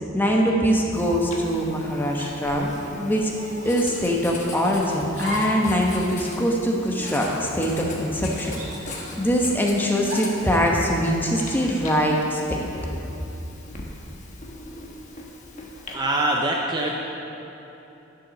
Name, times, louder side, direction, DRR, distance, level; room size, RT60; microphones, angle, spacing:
voice 1, 0.1-3.3 3.6-12.6, equal, 10° left, -1 dB, 1.0 m, -23 dB
Writing, 0.9-15.9, left 3 dB, 35° left, 1.1 m, -40 dB
sound 1, 1.0-1.4 2.1-2.3 3.3-3.8 5.1-5.6 6.0-6.1 6.9-7.4 8.3-9.2 10.0-10.4, left 1 dB, 35° right, 1.5 m, -34 dB
voice 2, 15.9-16.9, right 1 dB, 20° right, -1 dB, 0.6 m, -23 dB
11.0 x 6.8 x 5.9 m, 3.0 s
head